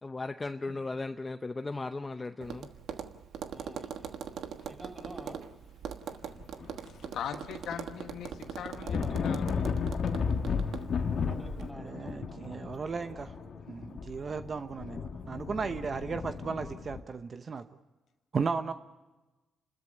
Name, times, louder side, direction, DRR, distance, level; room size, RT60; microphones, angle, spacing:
voice 1, 0.0-2.7, left 3 dB, 25° left, 0.7 m, -36 dB
Tap, 2.4-11.7, right 7 dB, 75° right, 1.3 m, -42 dB
voice 2, 3.5-5.5 8.6-9.4 11.0-13.5, right 1 dB, 5° right, 6.1 m, -49 dB
sound 1, 6.2-7.2 7.5-17.0, left 5 dB, 60° left, 1.5 m, -34 dB
voice 3, 7.1-9.6, left 8 dB, 80° left, 1.4 m, -40 dB
voice 4, 11.8-13.3 13.7-17.7 18.3-18.7, right 5 dB, 45° right, 0.9 m, -35 dB
29.0 x 13.0 x 8.4 m
cardioid pair, 75°, 0 cm